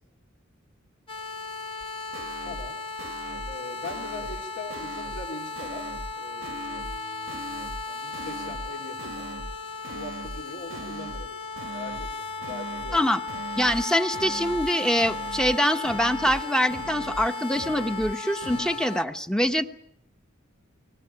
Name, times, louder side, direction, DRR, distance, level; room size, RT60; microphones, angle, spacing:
sound 1, 1.1-19.0, left 3 dB, 25° left, 1.2 m, -36 dB
sound 2, 1.8-1.9 2.1-2.7 3.0-3.6 3.8-4.4 4.7-5.3 5.6-6.1 6.4-7.0 7.3-7.8 8.1-8.7 9.0-9.6 9.8-10.4 10.7-11.3 11.6-12.1 12.4-13.0 13.3-13.8 14.1-14.7 15.0-15.6 15.8-16.4 16.7-17.3 17.5-18.1 18.4-18.8, right 2 dB, 80° right, 1.2 m, -40 dB
voice 1, 2.4-2.8 3.4-9.3 9.9-11.3 11.7-13.1, left 2 dB, 60° left, 3 dB, 3.0 m, -41 dB
voice 2, 13.6-19.7, equal, 5° left, 7 dB, 1.0 m, -24 dB
21.0 x 19.5 x 9.9 m, 0.75 s
head